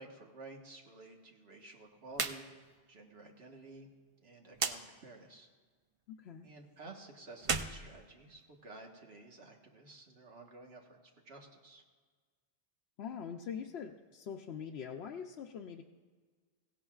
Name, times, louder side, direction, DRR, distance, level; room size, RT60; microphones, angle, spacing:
voice 1, 0.0-2.5 2.9-3.9 4.2-5.5 6.4-11.0 11.2-11.8, right 2 dB, 80° right, 1 dB, 1.6 m, -52 dB
sound 1, 2.1-2.4 2.7-2.8 4.5-4.8 7.3-8.7, right 5 dB, 45° right, 0.5 m, -35 dB
voice 2, 6.1-6.5 13.0-15.8, left 7 dB, 80° left, 2 dB, 0.9 m, -43 dB
16.5 x 16.5 x 2.4 m, 1.5 s
omnidirectional pair, 1.1 m